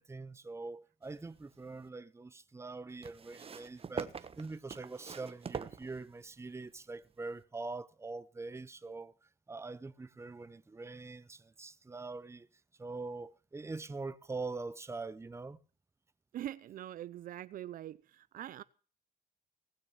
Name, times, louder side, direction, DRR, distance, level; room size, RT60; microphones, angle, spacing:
voice 1, 0.0-12.5 12.8-15.6, right 3 dB, 15° right, 0.9 m, -43 dB
sound 1, 1.0-1.9 3.0-6.5 7.4-7.5, right 6 dB, 35° right, 1.2 m, -44 dB
voice 2, 16.3-18.6, right 12 dB, 60° right, 0.6 m, -43 dB
19.0 x 6.6 x 7.1 m
cardioid pair, 85°, 16 cm